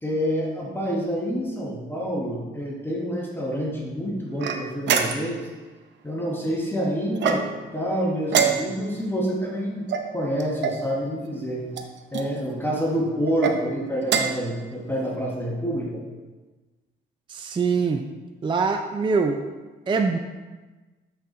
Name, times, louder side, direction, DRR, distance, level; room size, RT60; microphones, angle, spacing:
voice 1, 0.0-5.5 6.0-7.5 7.7-11.6 12.1-16.0, equal, 10° left, -3 dB, 1.2 m, -27 dB
sound 1, 4.4-5.5 7.2-7.7 8.3-9.0 9.9-10.8 11.7-12.3 13.2-13.6 14.0-14.5, right 7 dB, 65° right, 0.6 m, -25 dB
voice 2, 17.3-18.0 18.4-19.4 19.9-20.2, right 4 dB, 25° right, 5 dB, 0.4 m, -23 dB
8.3 x 4.0 x 3.7 m, 1.2 s
cardioid pair, 90°, 20 cm